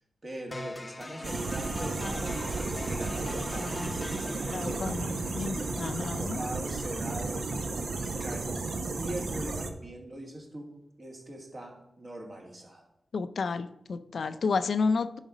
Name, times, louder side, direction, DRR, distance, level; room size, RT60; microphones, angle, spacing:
voice 1, 0.2-3.9 4.2-5.5 5.9-7.5 7.9-10.7 11.0-12.8 14.3-14.5, right 1 dB, 40° right, 1 dB, 1.9 m, -41 dB
sound 1, 0.5-8.5, left 2 dB, 20° left, 0.7 m, -43 dB
sound 2, 1.2-9.7, right 3 dB, 65° right, 0.8 m, -33 dB
voice 2, 4.5-6.4 13.1-15.2, left 4 dB, 70° left, 11 dB, 0.4 m, -31 dB
10.5 x 4.0 x 5.0 m, 0.83 s
wide cardioid pair, 115°, 0 cm